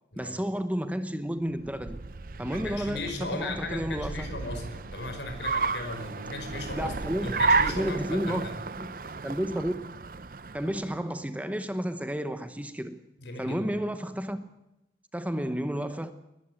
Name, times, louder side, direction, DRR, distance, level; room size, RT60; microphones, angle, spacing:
voice 1, 0.2-2.0 2.4-4.3 6.7-8.5 8.8-8.9 9.2-9.9 10.5-13.0 13.4-14.5 15.1-16.1, equal, 10° right, 1.0 m, -32 dB
Car, 1.5-11.0, right 4 dB, 50° right, 0.6 m, -32 dB
voice 2, 2.4-8.6 13.2-13.6, left 2 dB, 80° left, 5.0 m, -37 dB
21.0 x 13.5 x 9.2 m
head